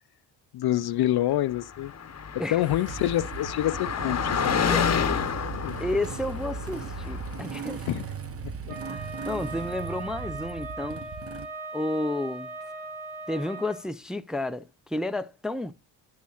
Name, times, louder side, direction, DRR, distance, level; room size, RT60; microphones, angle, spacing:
voice 1, 0.5-1.9 2.5-4.7 5.0-5.2 5.6-5.8 7.9-8.1 8.7-8.8, left 13 dB, 55° left, 0.5 m, -27 dB
Car passing by, 1.6-7.6, left 7 dB, 30° left, 0.9 m, -29 dB
Motorcycle / Engine starting, 2.6-11.5, right 5 dB, 30° right, 0.9 m, -38 dB
voice 2, 5.8-7.9 8.9-11.1 11.7-12.5 13.3-15.7, left 1 dB, ahead, 0.5 m, -31 dB
Wind instrument woodwind instrument, 8.7-13.8, right 2 dB, 70° right, 3.1 m, -39 dB
10.5 x 8.2 x 2.4 m
supercardioid pair, 65°, 49 cm